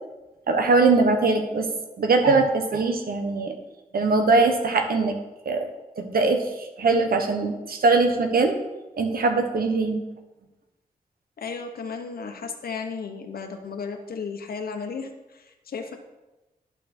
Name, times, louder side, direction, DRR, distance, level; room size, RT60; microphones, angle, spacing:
voice 1, 0.5-1.7 2.0-3.5 3.9-5.2 5.4-5.7 6.0-8.5 9.0-10.0, right 3 dB, 80° right, 5 dB, 1.1 m, -21 dB
voice 2, 11.4-16.0, left 5 dB, 90° left, 5 dB, 1.0 m, -34 dB
11.0 x 5.5 x 4.4 m, 1.1 s
wide cardioid pair, 85°, 15 cm